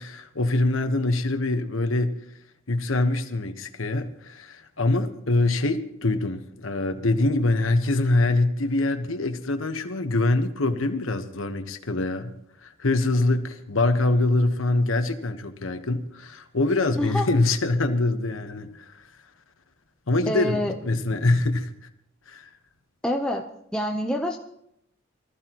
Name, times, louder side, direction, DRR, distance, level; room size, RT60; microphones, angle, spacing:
voice 1, 0.0-2.2 2.7-12.3 12.6-19.0 20.1-21.7 22.3-22.5, left 2 dB, 85° left, 1.3 m, -24 dB
voice 2, 20.3-20.7 23.0-23.4 23.7-24.4, equal, 5° left, 0.9 m, -26 dB
23.5 x 14.5 x 3.1 m
head